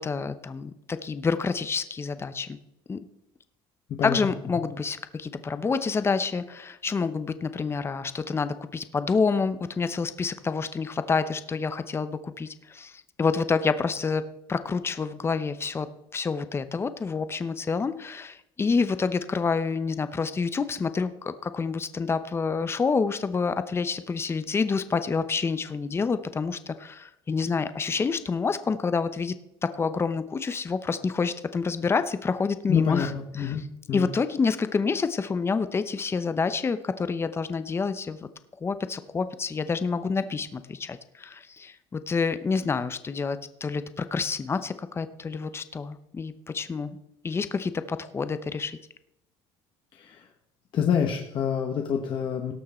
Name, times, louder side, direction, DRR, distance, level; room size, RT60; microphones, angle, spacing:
voice 1, 0.0-2.6 2.9-3.0 4.0-12.9 13.2-15.9 16.1-29.3 29.6-33.1 33.4-33.6 33.9-38.2 38.6-47.0 47.2-48.7, left 5 dB, 20° left, 12 dB, 0.7 m, -28 dB
voice 2, 32.7-34.1 50.0-50.2 50.7-52.5, left 7 dB, 45° left, 2 dB, 1.2 m, -27 dB
18.0 x 6.5 x 4.3 m, 0.82 s
cardioid pair, 110°, 11 cm